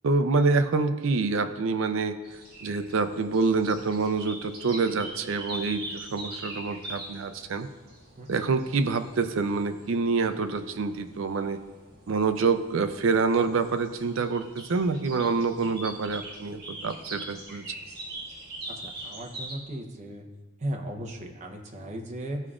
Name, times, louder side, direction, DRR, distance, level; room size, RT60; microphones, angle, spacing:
voice 1, 0.0-2.2 2.6-7.7 8.3-11.6 12.1-17.6, right 4 dB, 70° right, 10 dB, 0.5 m, -26 dB
sound 1, 2.2-19.6, right 1 dB, 50° right, 1.5 m, -43 dB
voice 2, 18.7-20.2 20.6-22.4, right 1 dB, 35° right, 1 dB, 0.8 m, -36 dB
13.0 x 4.9 x 2.4 m, 1.2 s
head